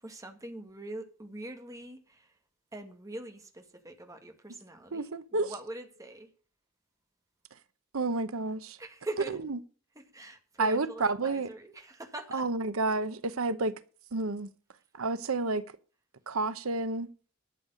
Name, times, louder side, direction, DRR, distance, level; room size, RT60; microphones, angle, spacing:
voice 1, 0.0-2.4 2.7-6.3 8.8-9.4 10.0-12.5, right 1 dB, 15° right, 1.9 m, -43 dB
voice 2, 4.9-5.5 7.9-8.8 10.6-11.5 12.3-13.7 14.1-14.5 15.0-15.6 16.3-17.1, right 3 dB, 90° right, 0.9 m, -30 dB
12.0 x 7.3 x 6.4 m
head